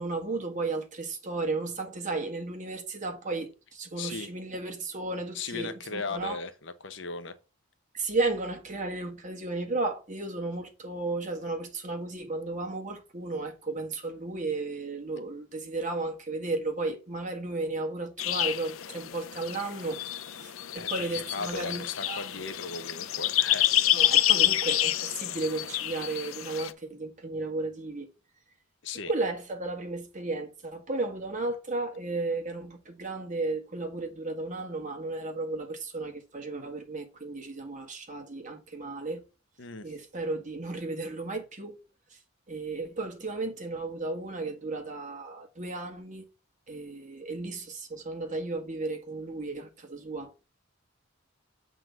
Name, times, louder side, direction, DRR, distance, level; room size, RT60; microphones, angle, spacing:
voice 1, 0.0-6.4 7.9-20.0 20.3-22.5 23.9-28.1 29.1-39.2 39.8-41.8 42.1-42.2 42.5-46.2 46.7-50.3, right 3 dB, 35° right, 1.7 m, -34 dB
voice 2, 4.0-4.3 5.3-7.4 20.7-23.8 28.8-29.1 39.6-39.9, left 4 dB, 60° left, 0.9 m, -37 dB
sound 1, 18.2-26.7, left 13 dB, 80° left, 0.6 m, -28 dB
7.7 x 3.9 x 4.6 m
head